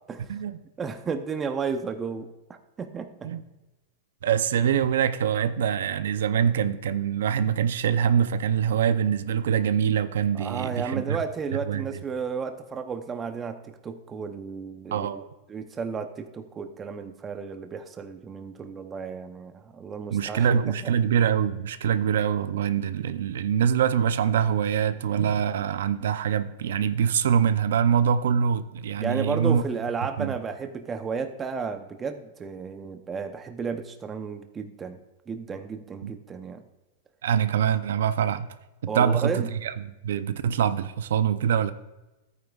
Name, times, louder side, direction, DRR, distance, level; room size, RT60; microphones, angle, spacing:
voice 1, 0.8-2.3 2.8-3.3 10.3-15.2 15.5-20.5 20.8-20.9 29.0-35.0 35.3-36.6 38.9-39.5, right 5 dB, 15° right, 0.7 m, -33 dB
voice 2, 4.2-11.2 11.7-11.8 14.9-15.2 20.1-29.6 30.2-30.3 36.0-36.1 37.2-38.5 38.8-39.7 40.0-41.7, right 8 dB, 80° right, 0.5 m, -24 dB
14.0 x 9.1 x 2.4 m
supercardioid pair, 155°, 0 cm